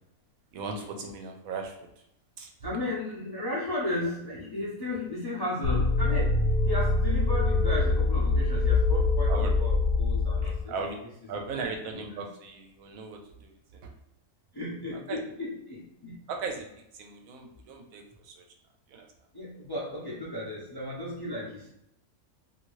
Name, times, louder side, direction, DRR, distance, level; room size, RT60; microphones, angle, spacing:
voice 1, 0.5-1.8 2.4-2.5 9.3-9.5 10.7-11.0 11.3-13.9 15.1-15.2 16.3-18.4 18.9-19.1, right 4 dB, 80° right, 3 dB, 1.0 m, -37 dB
voice 2, 2.6-10.7 11.3-12.2 14.5-16.2 19.3-21.7, left 1 dB, 35° left, -6 dB, 0.4 m, -35 dB
sound 1, 5.6-10.6, left 3 dB, 85° left, 1.0 m, -24 dB
2.6 x 2.6 x 3.0 m, 0.79 s
omnidirectional pair, 1.5 m